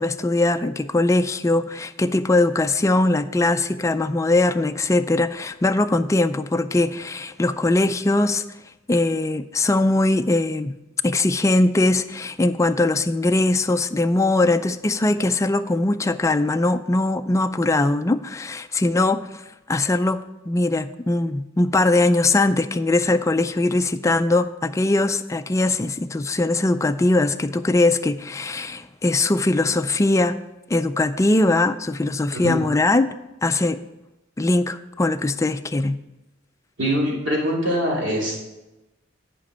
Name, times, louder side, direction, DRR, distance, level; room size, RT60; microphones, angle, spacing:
voice 1, 0.0-8.4 8.9-10.7 11.0-19.2 19.7-30.4 30.7-33.1 33.4-33.8 34.4-36.0, left 2 dB, 15° left, 9 dB, 0.3 m, -21 dB
voice 2, 36.8-38.4, equal, 65° right, -3 dB, 2.7 m, -23 dB
10.0 x 5.1 x 6.1 m, 1.0 s
head